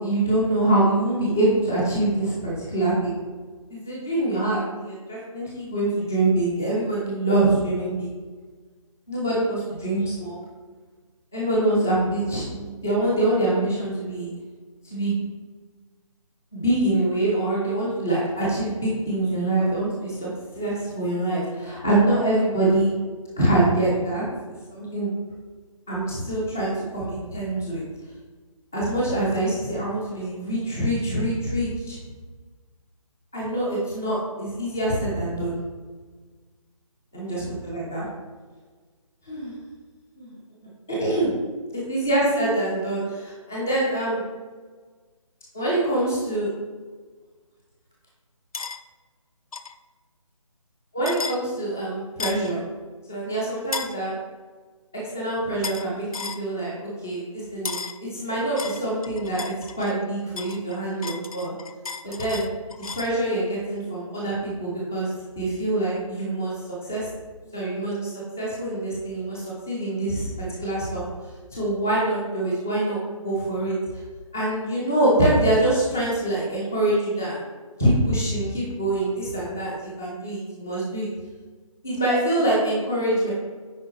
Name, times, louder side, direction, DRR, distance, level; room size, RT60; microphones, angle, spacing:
voice 1, 0.0-3.2 3.7-8.1 9.1-10.4 11.3-14.3 14.8-15.2 16.5-20.3 20.6-22.9 23.4-24.2 24.7-25.1 25.9-27.8 28.7-32.0 33.3-35.6 37.2-37.3 37.7-38.0 39.3-39.5 40.2-40.4 40.9-41.3 41.9-44.2 45.5-46.5 51.0-52.6 53.1-54.1 55.1-61.5 62.0-65.1 65.4-66.5 66.9-67.1 67.5-71.0 71.5-73.7 74.3-77.4 77.8-81.1 81.8-83.3, right 1 dB, 5° left, -5 dB, 0.3 m, -25 dB
sound 1, 48.5-48.8 49.5-49.7 51.0-51.4 52.2-52.5 53.7-54.0 55.6-55.9 56.1-56.4 57.6-58.0 58.6-60.0 60.4-63.1, left 5 dB, 80° left, 0.5 m, -34 dB
9.5 x 3.9 x 3.0 m, 1.4 s
figure-of-eight pair, 155°, 18 cm